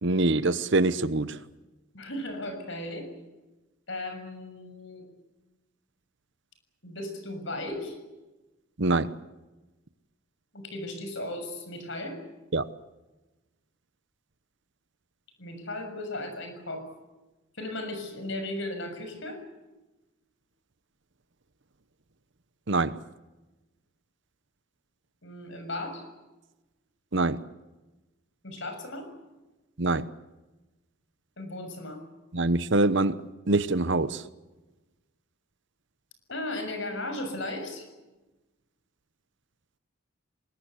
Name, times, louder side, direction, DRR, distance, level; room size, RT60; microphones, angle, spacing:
voice 1, 0.0-1.4 8.8-9.1 12.5-12.7 22.7-23.0 27.1-27.4 29.8-30.1 32.3-34.2, right 2 dB, 55° right, 14 dB, 1.0 m, -24 dB
voice 2, 1.9-3.1 3.9-5.0 6.8-8.0 10.5-12.2 15.4-16.9 17.5-19.4 25.2-26.0 28.4-29.1 31.4-32.0 36.3-37.9, left 1 dB, 55° left, 7 dB, 6.7 m, -36 dB
25.0 x 21.5 x 8.4 m, 1.1 s
head